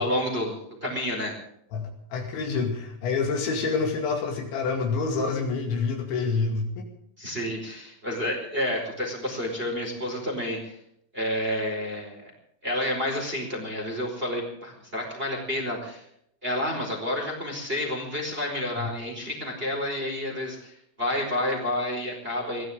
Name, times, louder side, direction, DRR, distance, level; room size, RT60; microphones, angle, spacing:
voice 1, 0.0-1.3 7.2-10.8 11.1-12.3 12.6-16.0 16.4-22.6, left 1 dB, 10° right, 0 dB, 4.3 m, -30 dB
voice 2, 1.7-6.9 18.8-18.9, left 4 dB, 65° left, 3 dB, 4.4 m, -27 dB
23.0 x 17.0 x 3.7 m, 0.71 s
omnidirectional pair, 5.9 m